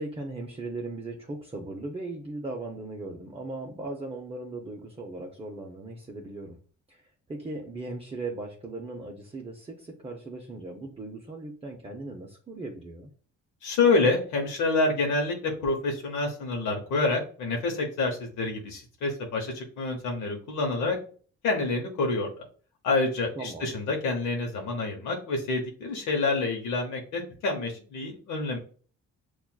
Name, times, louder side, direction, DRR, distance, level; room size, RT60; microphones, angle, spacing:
voice 1, 0.0-6.6 6.9-13.1 23.4-23.7, right 2 dB, 20° right, 0 dB, 0.6 m, -38 dB
voice 2, 13.6-21.0 21.4-22.3 22.8-28.6, left 3 dB, 80° left, 1 dB, 0.8 m, -27 dB
5.7 x 2.4 x 2.2 m, 0.42 s
cardioid pair, 90°, 30 cm